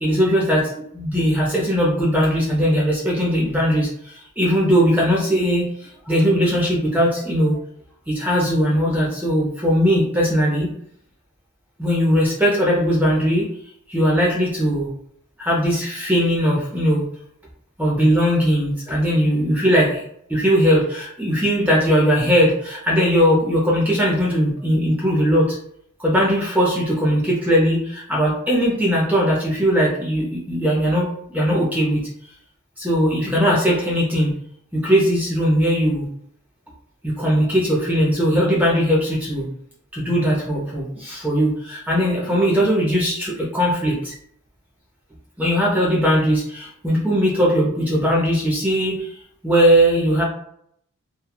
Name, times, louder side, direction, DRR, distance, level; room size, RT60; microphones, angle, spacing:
voice 1, 0.0-7.6 8.1-10.7 11.8-13.5 13.9-14.9 15.4-17.0 17.8-20.0 20.3-25.6 26.0-32.0 32.8-34.3 34.7-36.1 37.2-39.5 39.9-44.2 45.4-49.2 49.4-50.2, equal, 5° right, -4 dB, 0.5 m, -19 dB
2.9 x 2.2 x 2.2 m, 0.68 s
head